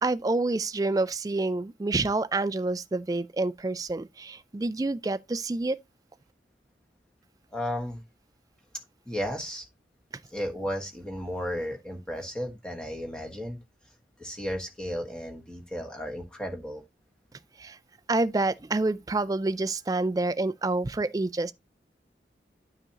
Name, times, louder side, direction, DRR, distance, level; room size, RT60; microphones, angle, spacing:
voice 1, 0.0-5.8 17.6-17.8 18.1-21.5, right 2 dB, 20° right, 0.3 m, -28 dB
voice 2, 7.5-8.0 9.1-9.6 10.3-13.6 14.2-16.8, equal, 5° left, 1.5 m, -34 dB
9.4 x 5.8 x 2.9 m
head